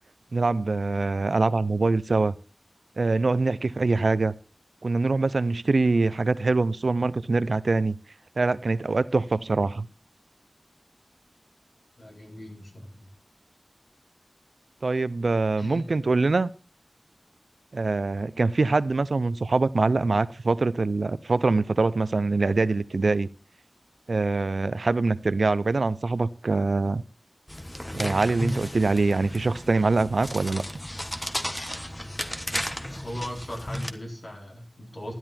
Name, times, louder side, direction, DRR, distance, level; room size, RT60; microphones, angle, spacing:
voice 1, 0.3-2.3 3.0-4.3 4.8-8.0 8.4-9.9 14.8-16.5 17.7-23.3 24.1-27.0 27.9-30.6, right 3 dB, 80° right, 0.5 m, -24 dB
voice 2, 12.0-13.1 15.6-15.9 33.0-35.1, equal, 65° left, 4.4 m, -38 dB
sound 1, 27.5-33.9, left 1 dB, 20° left, 1.3 m, -34 dB
12.5 x 11.0 x 4.2 m
wide cardioid pair, 60°, 0 cm